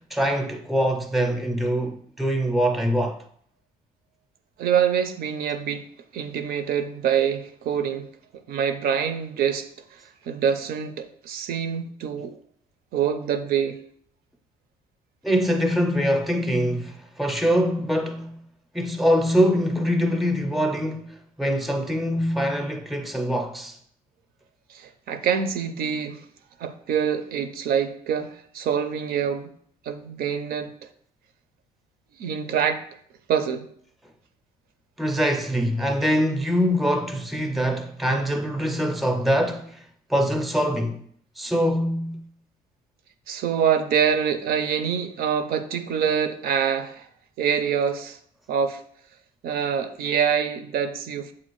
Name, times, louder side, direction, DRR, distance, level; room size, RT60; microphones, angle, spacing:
voice 1, 0.0-3.2 15.2-18.4 18.7-23.7 35.0-39.8 40.1-41.0 41.4-42.2, equal, ahead, 0.5 m, -23 dB
voice 2, 4.6-5.9 6.1-8.1 8.5-12.4 12.9-13.8 24.7-26.3 26.6-29.5 29.9-30.7 32.2-32.8 33.3-33.7 43.3-47.1 47.4-48.2 48.5-48.8 49.4-51.3, right 8 dB, 65° right, 0.4 m, -25 dB
7.2 x 2.4 x 3.0 m
cardioid pair, 110°, 17 cm